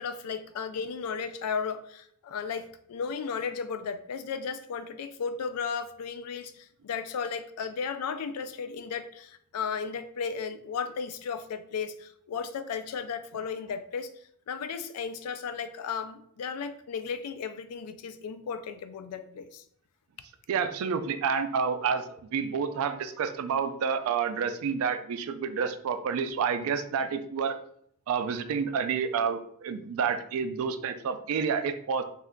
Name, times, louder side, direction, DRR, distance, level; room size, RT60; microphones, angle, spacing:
voice 1, 0.0-14.1 14.5-19.6, left 6 dB, 80° left, 10 dB, 0.3 m, -35 dB
voice 2, 20.5-27.6 28.1-32.0, right 6 dB, 65° right, 10 dB, 0.3 m, -29 dB
2.4 x 2.2 x 3.6 m, 0.68 s
head